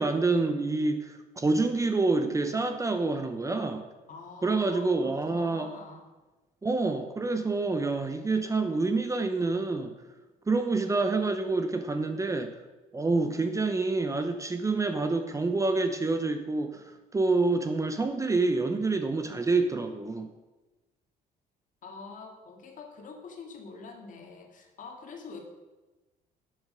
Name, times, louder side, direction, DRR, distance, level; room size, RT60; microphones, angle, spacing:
voice 1, 0.0-3.8 4.4-5.7 6.6-9.9 10.5-12.5 12.9-20.3, right 3 dB, 20° right, 7 dB, 0.8 m, -27 dB
voice 2, 4.1-6.1 21.8-25.4, left 4 dB, 50° left, 3 dB, 2.1 m, -45 dB
12.0 x 6.7 x 5.1 m, 1.1 s
cardioid pair, 110°, 17 cm